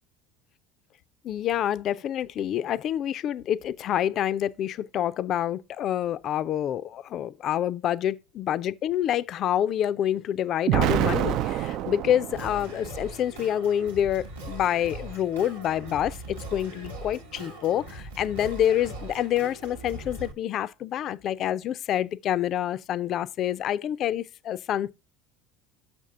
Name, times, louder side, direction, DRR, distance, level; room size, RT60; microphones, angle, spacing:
voice 1, 1.2-24.9, left 10 dB, 50° left, 0.4 m, -27 dB
Explosion, 10.7-12.8, right 12 dB, 55° right, 0.3 m, -26 dB
Singing, 12.3-20.3, right 1 dB, 90° right, 1.1 m, -40 dB
6.4 x 5.2 x 3.6 m
hypercardioid pair, 70°, 0 cm